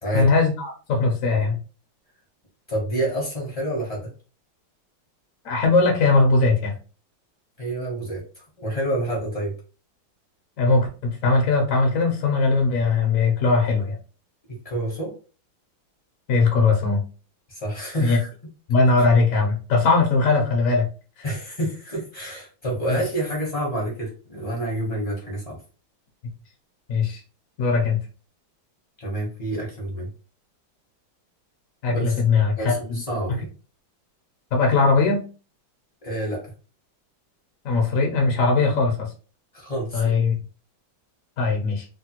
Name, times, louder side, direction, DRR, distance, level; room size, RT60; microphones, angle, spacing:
voice 1, 0.1-1.6 5.4-6.7 10.6-14.0 16.3-17.0 18.0-18.2 18.7-20.8 22.9-23.0 26.9-27.2 27.6-28.0 31.8-33.0 34.5-35.2 37.6-39.1 39.9-40.3 41.4-41.9, left 3 dB, 65° left, 1 dB, 0.8 m, -20 dB
voice 2, 2.7-4.1 7.6-9.5 14.6-15.1 17.5-18.3 19.0-19.1 21.2-25.6 29.0-30.1 31.9-32.1 32.5-33.5 36.0-36.4 39.5-40.1, right 1 dB, 35° left, -3 dB, 0.6 m, -28 dB
3.2 x 2.2 x 2.9 m, 0.35 s
omnidirectional pair, 2.2 m